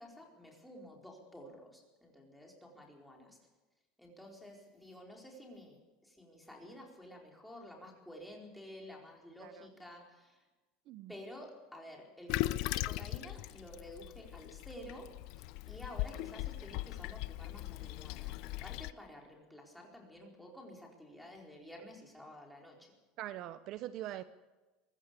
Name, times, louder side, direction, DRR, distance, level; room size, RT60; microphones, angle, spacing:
voice 1, 0.0-3.4 4.0-10.5 11.1-22.9, left 1 dB, ahead, 4.5 m, -51 dB
Toilet flush, 12.3-18.9, left 18 dB, 60° left, 0.6 m, -39 dB
voice 2, 23.2-24.2, right 13 dB, 50° right, 0.7 m, -42 dB
23.0 x 15.0 x 8.3 m
supercardioid pair, 145°, 0 cm